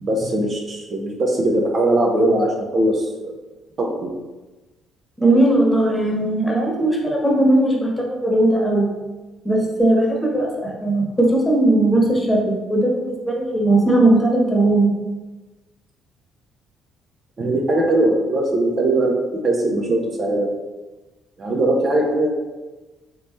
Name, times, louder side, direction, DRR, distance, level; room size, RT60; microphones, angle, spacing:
voice 1, 0.0-3.4 3.8-4.1 17.4-20.5 21.4-22.3, right 1 dB, 45° right, 0 dB, 0.7 m, -20 dB
voice 2, 5.2-8.9 9.4-14.9, right 1 dB, 15° left, -1 dB, 1.2 m, -18 dB
3.8 x 3.7 x 3.1 m, 1.2 s
figure-of-eight pair, 45°, 0 cm